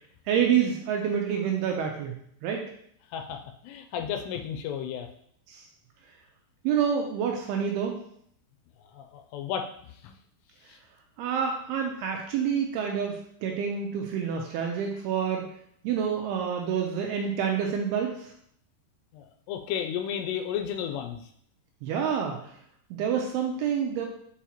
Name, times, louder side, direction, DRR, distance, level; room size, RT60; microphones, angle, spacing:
voice 1, 0.3-2.1 2.4-2.6 5.5-5.6 6.6-8.0 11.2-15.5 15.8-18.3 21.8-22.5 22.9-24.1, right 7 dB, 80° right, 2 dB, 2.4 m, -28 dB
voice 2, 3.1-5.1 8.8-9.7 10.0-10.1 10.7-10.8 19.1-21.3, left 8 dB, 80° left, 5 dB, 2.6 m, -33 dB
7.0 x 4.7 x 2.9 m, 0.67 s
omnidirectional pair, 5.0 m